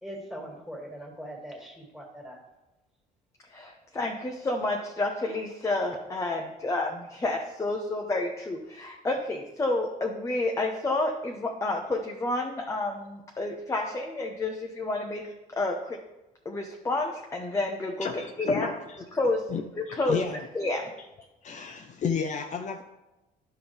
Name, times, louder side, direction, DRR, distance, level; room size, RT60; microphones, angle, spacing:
voice 1, 0.0-2.4, equal, ahead, -1 dB, 2.3 m, -41 dB
voice 2, 3.5-16.0 16.4-18.1 18.4-18.7 19.1-19.5 19.8-20.9, left 2 dB, 20° left, 1 dB, 0.9 m, -30 dB
voice 3, 18.0-18.8 19.5-20.5 21.4-22.8, left 6 dB, 45° left, 5 dB, 0.7 m, -32 dB
10.5 x 5.7 x 3.5 m, 0.99 s
cardioid pair, 110°, 17 cm